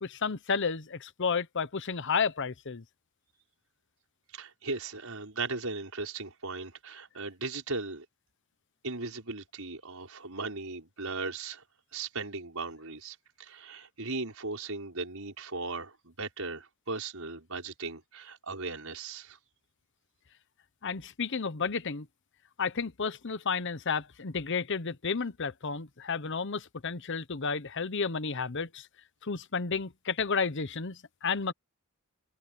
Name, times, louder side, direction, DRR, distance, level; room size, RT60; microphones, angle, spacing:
voice 1, 0.0-2.8 20.8-22.1 22.6-28.9 29.2-31.5, left 5 dB, 60° left, 1.0 m, -32 dB
voice 2, 4.3-8.1 8.8-11.6 11.9-19.4, right 3 dB, 85° right, 5.4 m, -37 dB
head